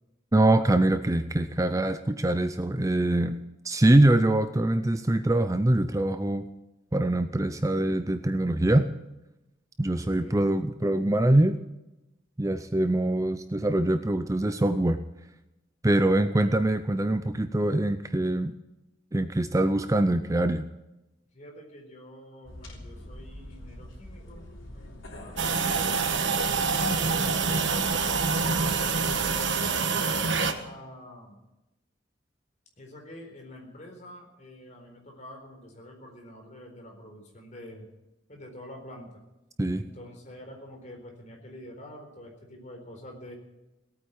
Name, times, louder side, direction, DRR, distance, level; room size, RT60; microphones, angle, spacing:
voice 1, 0.3-3.4 3.6-6.5 6.9-8.9 9.8-11.6 12.4-15.0 15.8-18.5 19.1-20.7 39.6-39.8, right 1 dB, 15° right, 10 dB, 0.5 m, -24 dB
voice 2, 10.0-10.5 16.1-16.6 21.3-28.1 29.0-31.4 32.8-37.9 38.3-39.2 39.7-43.3, left 1 dB, 40° left, 1 dB, 4.1 m, -47 dB
sound 1, 22.4-29.5, left 1 dB, 85° left, 3.5 m, -43 dB
sound 2, 25.4-30.5, right 4 dB, 65° right, 1.3 m, -26 dB
18.0 x 8.9 x 8.7 m, 0.98 s
head